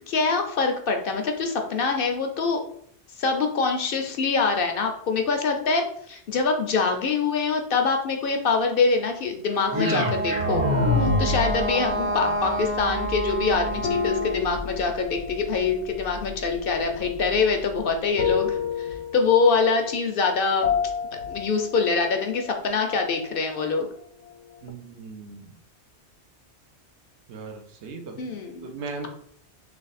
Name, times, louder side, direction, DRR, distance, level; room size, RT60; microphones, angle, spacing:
voice 1, 0.1-2.6 3.1-10.6 11.0-20.7 21.3-23.9 28.2-28.7, left 4 dB, 60° left, 4 dB, 0.7 m, -24 dB
Wind instrument woodwind instrument, 9.5-14.4, right 2 dB, 20° right, 0.3 m, -29 dB
sound 1, 9.7-17.9, left 1 dB, 50° right, 1.4 m, -29 dB
sound 2, 13.8-23.7 24.0-24.7, left 7 dB, 85° left, 1.0 m, -32 dB
voice 2, 24.6-25.5 27.3-29.1, right 4 dB, 75° right, 4 dB, 1.0 m, -38 dB
3.3 x 3.0 x 4.0 m, 0.65 s
omnidirectional pair, 1.2 m